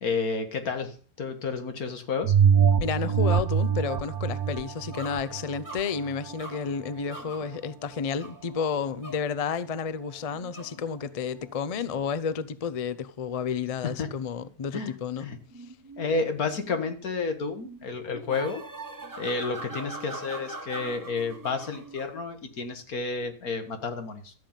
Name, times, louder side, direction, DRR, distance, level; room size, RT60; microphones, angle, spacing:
voice 1, 0.0-2.3 14.0-14.1 14.7-14.9 15.2-15.4 16.0-18.6 19.2-24.3, left 4 dB, 75° left, 2.0 m, -31 dB
sound 1, 2.2-7.2 7.7-7.8, right 7 dB, 80° right, 1.3 m, -25 dB
voice 2, 2.8-15.3, left 6 dB, 55° left, 0.4 m, -31 dB
sound 2, 4.9-7.6 8.1-8.4 8.9-9.3 10.3-10.8 13.6-14.2 15.2-17.0 17.6-22.2, right 2 dB, 15° right, 1.2 m, -42 dB
13.0 x 5.4 x 8.9 m
omnidirectional pair, 1.6 m